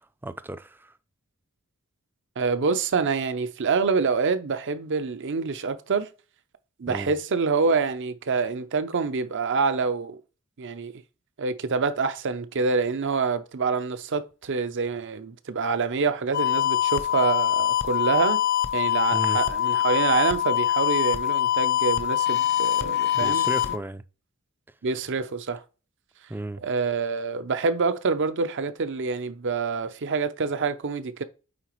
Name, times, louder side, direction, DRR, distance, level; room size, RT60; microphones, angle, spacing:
voice 1, 0.2-0.9 6.9-7.1 19.1-19.4 23.2-24.0 26.3-26.6, right 1 dB, 10° right, 0.3 m, -34 dB
voice 2, 2.4-6.1 6.8-10.2 10.6-10.9 11.4-18.4 18.7-23.5 24.8-25.6 26.6-31.2, right 4 dB, 55° right, 0.6 m, -26 dB
sound 1, 16.3-23.8, left 12 dB, 50° left, 0.6 m, -24 dB
8.7 x 3.9 x 3.1 m
head